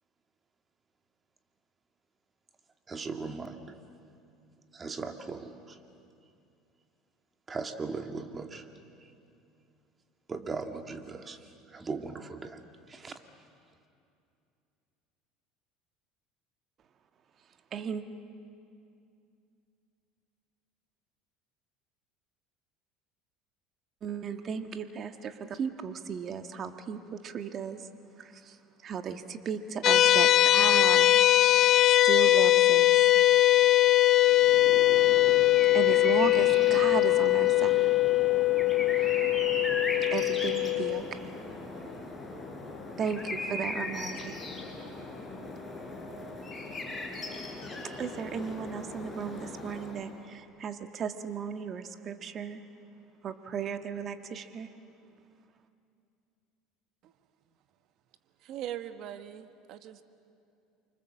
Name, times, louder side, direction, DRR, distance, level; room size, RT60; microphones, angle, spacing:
voice 1, 2.9-3.8 4.7-5.8 7.5-8.7 9.0-9.1 10.3-12.6 12.9-13.2, right 4 dB, 25° right, 6 dB, 1.9 m, -38 dB
voice 2, 17.7-18.0 24.0-27.8 28.2-28.5 28.8-31.1 31.8-33.0 35.7-37.9 40.1-41.4 43.0-44.4 48.0-52.6 53.2-54.7, right 7 dB, 40° right, 8 dB, 1.5 m, -35 dB
sound 1, 29.8-41.0, left 15 dB, 50° left, 0.8 m, -21 dB
sound 2, 34.3-50.2, left 2 dB, 15° left, 4.1 m, -38 dB
voice 3, 58.4-60.0, right 11 dB, 55° right, 9 dB, 1.4 m, -40 dB
28.5 x 25.0 x 7.6 m, 2.5 s
supercardioid pair, 120°, 0 cm